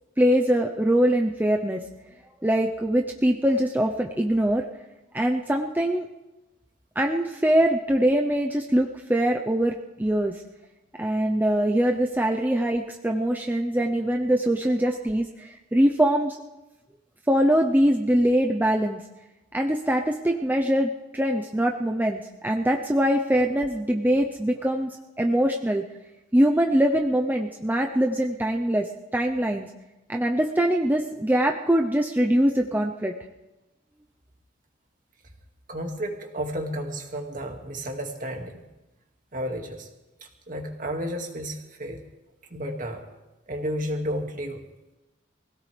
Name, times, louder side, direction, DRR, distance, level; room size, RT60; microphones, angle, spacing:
voice 1, 0.2-1.8 2.4-4.7 5.1-6.1 7.0-10.4 11.0-16.4 17.3-19.0 19.5-25.8 26.3-29.7 30.1-33.1, right 1 dB, 10° right, 2 dB, 0.7 m, -23 dB
voice 2, 35.7-38.7 39.3-39.9 40.2-42.0 42.5-43.0 43.5-44.6, equal, 45° right, 3 dB, 2.1 m, -32 dB
24.0 x 17.0 x 3.4 m, 1.0 s
head